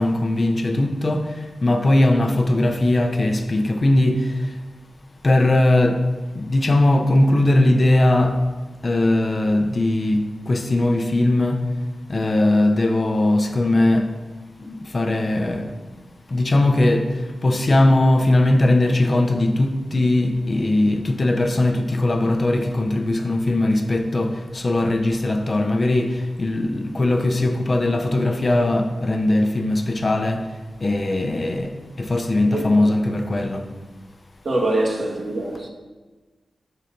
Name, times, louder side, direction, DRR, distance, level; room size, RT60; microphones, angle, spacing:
voice 1, 0.0-4.5 5.2-6.0 6.3-8.4 8.8-11.7 12.1-14.1 14.6-15.7 16.3-30.5 30.8-33.7, left 1 dB, 45° left, 0.6 m, -19 dB
voice 2, 32.5-32.9 34.4-35.7, right 2 dB, 55° right, 1.2 m, -24 dB
4.9 x 4.0 x 5.8 m
cardioid pair, 45°, 0 cm